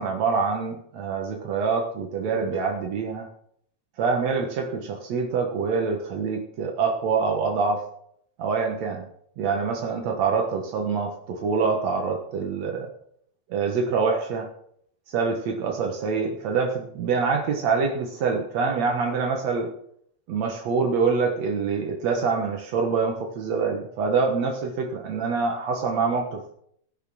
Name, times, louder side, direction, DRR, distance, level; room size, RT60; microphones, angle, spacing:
voice 1, 0.0-3.3 4.0-7.8 8.4-9.0 9.4-12.9 13.5-14.5 15.1-19.7 20.3-26.4, right 5 dB, 90° right, 2 dB, 1.5 m, -25 dB
19.0 x 6.3 x 6.1 m, 0.69 s
omnidirectional pair, 5.2 m